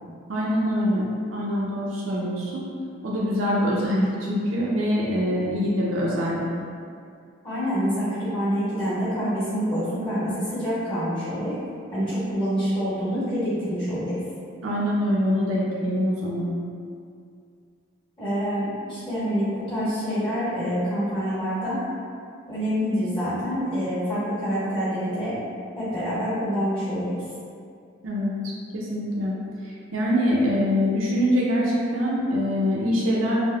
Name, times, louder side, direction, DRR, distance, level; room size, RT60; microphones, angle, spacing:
voice 1, 0.3-2.7 3.0-6.5 14.6-16.5 28.0-28.3 28.7-33.4, equal, 75° right, -5 dB, 0.4 m, -24 dB
voice 2, 7.4-11.5 11.9-14.2 18.2-21.8 22.5-25.4 25.7-27.2, equal, 25° left, -13 dB, 1.1 m, -26 dB
3.3 x 2.0 x 2.2 m, 2.3 s
head